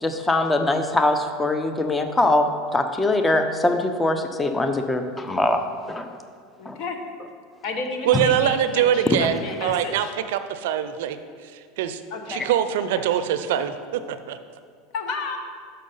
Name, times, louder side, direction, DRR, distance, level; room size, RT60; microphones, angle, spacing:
voice 1, 0.0-5.6 5.9-6.1 6.7-6.8 8.1-8.2, left 2 dB, 15° left, 7 dB, 0.6 m, -22 dB
voice 2, 6.6-7.0 7.6-10.1 12.1-12.5 12.9-13.0 14.9-15.4, left 3 dB, 60° left, 4 dB, 1.1 m, -31 dB
voice 3, 8.1-11.2 11.5-12.0 12.3-14.4, right 10 dB, 75° right, 11 dB, 0.4 m, -23 dB
6.3 x 5.5 x 5.5 m, 2.1 s
supercardioid pair, 115°, 0 cm